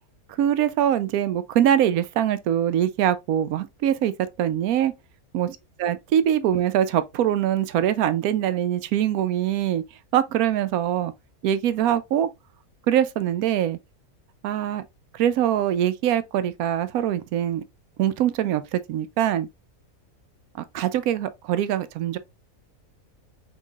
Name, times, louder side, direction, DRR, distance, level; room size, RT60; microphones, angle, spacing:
voice 1, 0.4-4.1 4.4-4.9 5.3-9.8 10.1-11.1 11.4-12.3 12.9-13.8 14.4-14.8 15.1-17.6 18.0-19.5 20.7-22.2, right 10 dB, 85° right, 1.1 m, -23 dB
5.4 x 3.6 x 2.3 m
omnidirectional pair, 1.5 m